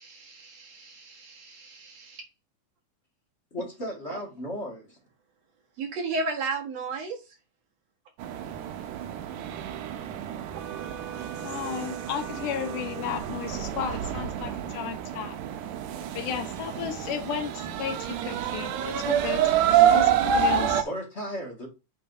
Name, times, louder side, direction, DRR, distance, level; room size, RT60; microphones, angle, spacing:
voice 1, 0.0-2.2 5.8-7.2, right 3 dB, 60° right, 2.5 m, -34 dB
voice 2, 3.5-5.0 20.8-21.7, equal, 25° left, 1.7 m, -35 dB
sound 1, 8.2-20.8, right 9 dB, 85° right, 2.2 m, -27 dB
voice 3, 11.4-15.4 16.1-19.5 19.9-20.9, left 9 dB, 85° left, 2.6 m, -34 dB
8.4 x 6.0 x 2.7 m
omnidirectional pair, 3.6 m